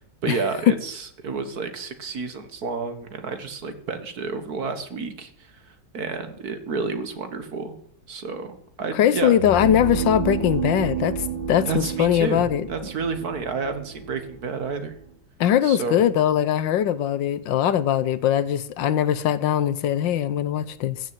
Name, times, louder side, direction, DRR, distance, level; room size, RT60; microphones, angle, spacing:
voice 1, 0.2-7.8 8.1-9.3 11.7-15.0 15.6-16.1, right 4 dB, 55° right, 2.0 m, -30 dB
voice 2, 8.9-12.7 15.4-21.0, left 10 dB, 85° left, 1.5 m, -21 dB
sound 1, 9.2-15.1, right 7 dB, 75° right, 2.7 m, -31 dB
15.0 x 6.8 x 9.1 m
omnidirectional pair, 2.0 m